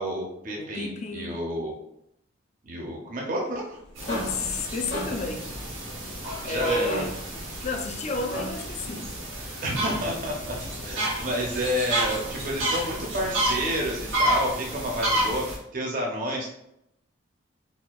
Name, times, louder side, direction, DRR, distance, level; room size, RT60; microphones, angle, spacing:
voice 1, 0.0-1.8 2.6-3.8 6.4-7.1 9.6-10.6 10.8-16.5, equal, 40° right, 0.5 m, -30 dB
voice 2, 0.5-1.4 4.1-5.5 6.4-7.1 7.6-9.1 14.6-14.8, left 3 dB, 35° left, 0.3 m, -31 dB
sound 1, 3.6-8.8, left 1 dB, 55° left, 0.9 m, -37 dB
sound 2, 4.0-15.6, right 1 dB, 80° right, 1.0 m, -30 dB
4.2 x 2.3 x 2.3 m
head